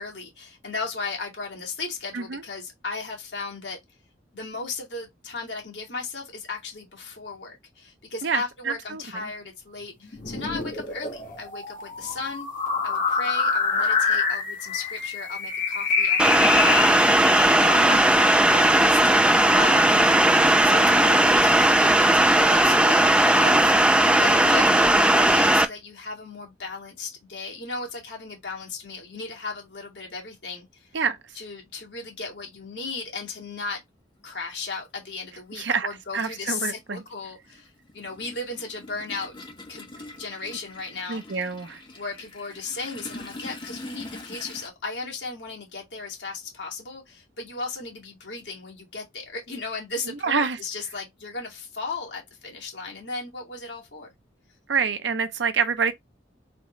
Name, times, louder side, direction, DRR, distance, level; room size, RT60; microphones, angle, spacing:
voice 1, 0.0-3.8 4.3-12.5 12.8-16.8 17.5-19.1 19.5-19.9 20.6-23.9 24.2-30.9 31.3-33.8 34.2-39.3 39.7-41.4 41.9-54.1, left 3 dB, 65° left, 2.3 m, -36 dB
voice 2, 8.2-9.0 17.8-18.0 30.9-31.2 35.6-35.9 36.1-37.0 41.1-41.8 50.2-50.6 54.7-55.9, right 5 dB, 70° right, 0.7 m, -26 dB
sound 1, 10.1-17.5, left 5 dB, 45° left, 1.7 m, -26 dB
sound 2, 16.2-25.7, right 1 dB, 5° right, 0.3 m, -18 dB
Toilet flush, 34.2-34.3 35.6-35.7 36.1-44.7, left 2 dB, 25° left, 1.2 m, -43 dB
4.2 x 3.7 x 3.1 m
head